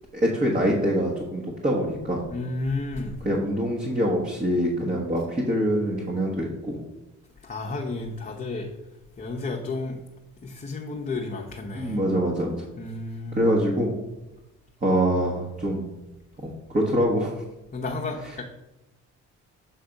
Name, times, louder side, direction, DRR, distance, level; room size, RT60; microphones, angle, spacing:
voice 1, 0.1-2.2 3.2-6.8 11.7-12.6 13.3-13.9 14.8-15.9 16.4-17.3, equal, 25° right, -2 dB, 1.3 m, -24 dB
voice 2, 2.3-3.2 7.4-8.7 9.2-10.0 10.4-12.0 12.8-13.5 17.7-18.4, left 3 dB, 30° left, -1 dB, 0.9 m, -32 dB
7.3 x 3.4 x 5.2 m, 0.98 s
cardioid pair, 80°, 30 cm